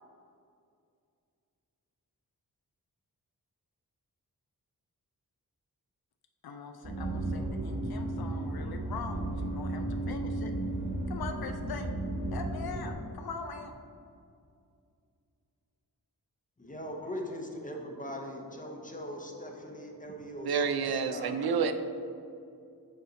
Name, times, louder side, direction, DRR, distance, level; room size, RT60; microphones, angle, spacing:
voice 1, 6.4-10.5 11.1-11.9 12.3-13.7, left 4 dB, 80° left, 5 dB, 0.5 m, -42 dB
sound 1, 6.8-12.9, right 1 dB, 55° right, 1.4 m, -34 dB
voice 2, 16.6-21.3, equal, 20° left, 1 dB, 0.7 m, -40 dB
voice 3, 20.4-21.7, right 6 dB, 90° right, 9 dB, 0.5 m, -28 dB
6.6 x 4.1 x 3.9 m, 2.4 s
wide cardioid pair, 100°, 36 cm